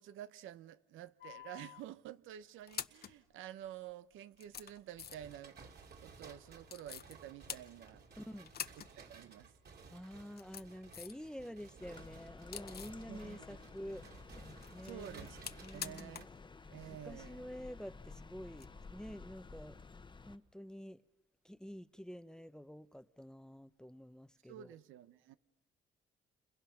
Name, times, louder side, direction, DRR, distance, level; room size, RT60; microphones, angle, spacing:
voice 1, 0.0-5.6 6.0-8.0 8.9-9.5 13.1-13.6 14.8-15.4 15.7-16.3 16.7-17.5 24.5-25.4, right 11 dB, 90° right, 0.8 m, -50 dB
sound 1, 1.2-1.8 2.5-3.2 3.9-4.0 4.4-5.4 6.7-7.1 7.5-8.1 8.5-8.9 9.2-9.3 10.1-11.3 11.6-13.0 14.4-16.4 16.6-16.7 18.5-18.7, left 9 dB, 50° left, 0.9 m, -47 dB
sound 2, 5.1-16.2, right 4 dB, 55° right, 2.8 m, -57 dB
voice 2, 8.2-8.5 9.9-14.1 14.7-15.3 15.6-16.2 17.0-19.8 20.2-21.0 21.4-24.7, equal, 5° left, 0.7 m, -48 dB
sound 3, 11.8-20.4, left 4 dB, 25° left, 1.0 m, -53 dB
29.5 x 27.5 x 5.8 m
cardioid pair, 90°, 20 cm